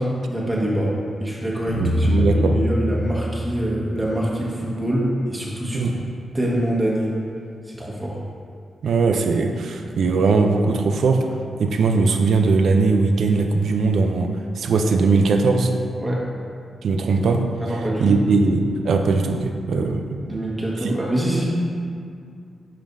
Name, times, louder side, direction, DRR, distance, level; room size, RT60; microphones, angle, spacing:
voice 1, 0.0-5.9 6.3-7.1 7.7-8.2 16.0-16.2 17.6-18.2 20.2-21.4, right 1 dB, 20° right, -4 dB, 1.5 m, -25 dB
sound 1, 1.7-3.9, left 1 dB, 70° left, 1.3 m, -23 dB
voice 2, 1.8-2.6 5.7-5.9 8.8-15.7 16.8-17.5 18.0-20.1 20.8-21.0, right 4 dB, 80° right, 5 dB, 0.5 m, -20 dB
8.7 x 5.2 x 2.7 m, 2.3 s
cardioid pair, 75°, 0 cm